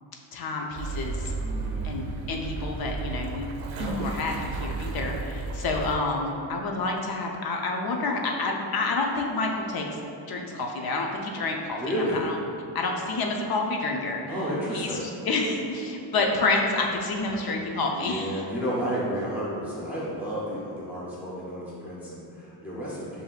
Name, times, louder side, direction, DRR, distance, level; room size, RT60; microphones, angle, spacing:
voice 1, 0.3-1.3 1.8-3.5 3.8-9.9 10.2-12.3 12.7-14.2 14.7-18.4, left 3 dB, 55° left, 1 dB, 0.5 m, -29 dB
sound 1, 0.8-5.9, right 3 dB, 75° right, 0.6 m, -33 dB
voice 2, 1.4-1.9 11.8-12.2 14.3-15.0 18.0-23.2, equal, 5° right, -8 dB, 0.6 m, -31 dB
7.2 x 2.6 x 2.4 m, 2.9 s
cardioid pair, 145°, 46 cm